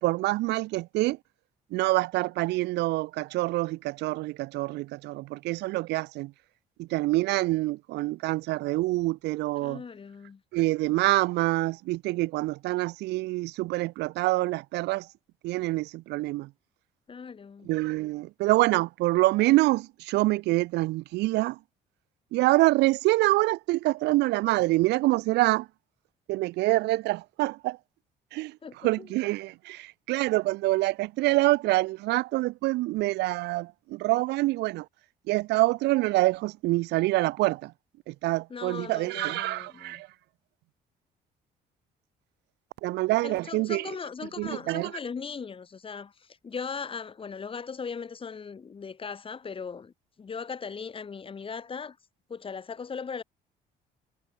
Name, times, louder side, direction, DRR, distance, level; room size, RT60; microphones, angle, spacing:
voice 1, 0.0-1.2 1.7-6.3 6.8-9.8 10.5-15.1 15.4-16.5 17.6-21.6 22.3-25.7 26.3-27.8 28.3-28.6 28.8-34.9 35.3-37.7 38.1-40.1 42.8-43.9 44.4-44.9, right 19 dB, 85° right, 2.3 m, -26 dB
voice 2, 9.6-10.4 17.1-17.7 28.6-29.1 38.5-40.0 43.2-49.9 50.2-52.0 52.3-53.2, left 5 dB, 30° left, 5.3 m, -38 dB
cardioid pair, 110°, 17 cm